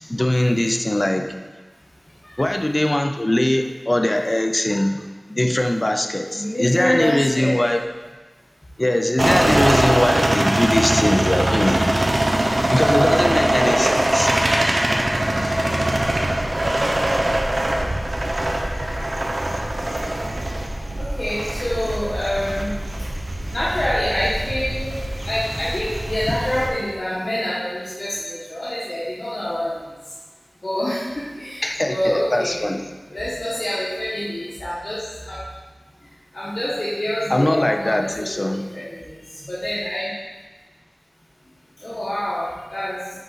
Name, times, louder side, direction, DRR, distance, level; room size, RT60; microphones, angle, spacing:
voice 1, 0.1-1.3 2.2-5.0 5.3-7.9 8.8-11.8 12.7-14.9 31.6-32.9 37.3-38.6, left 1 dB, 35° left, 5 dB, 0.4 m, -21 dB
voice 2, 6.3-7.5 15.1-15.2 16.4-16.8 18.3-19.0 21.0-23.1 23.5-24.9 25.2-29.8 30.6-32.7 33.1-35.5 36.3-39.2 39.5-40.1 41.8-43.0, left 1 dB, 65° left, -9 dB, 1.2 m, -26 dB
sound 1, 9.2-26.7, right 1 dB, 70° right, 0.8 m, -22 dB
7.7 x 3.9 x 4.0 m, 1.3 s
wide cardioid pair, 50°, 0 cm